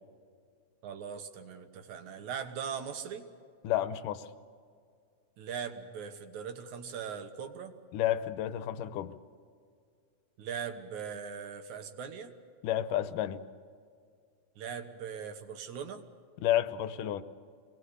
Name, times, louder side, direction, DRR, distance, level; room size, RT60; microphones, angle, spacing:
voice 1, 0.8-3.3 5.4-7.7 10.4-12.3 14.6-16.0, right 7 dB, 70° right, 7 dB, 2.7 m, -40 dB
voice 2, 3.6-4.3 7.9-9.1 12.6-13.4 16.4-17.2, left 12 dB, 85° left, 12 dB, 2.5 m, -30 dB
25.5 x 19.5 x 8.2 m, 2.2 s
omnidirectional pair, 3.6 m